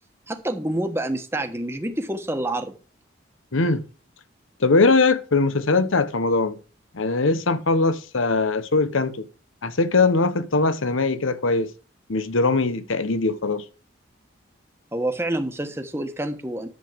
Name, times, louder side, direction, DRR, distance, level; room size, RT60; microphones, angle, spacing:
voice 1, 0.3-2.7 14.9-16.7, right 1 dB, 10° right, 1.3 m, -27 dB
voice 2, 3.5-3.8 4.6-6.6 6.9-9.3 9.6-11.7 12.1-13.6, left 3 dB, 85° left, 1.0 m, -21 dB
11.0 x 8.1 x 5.2 m
head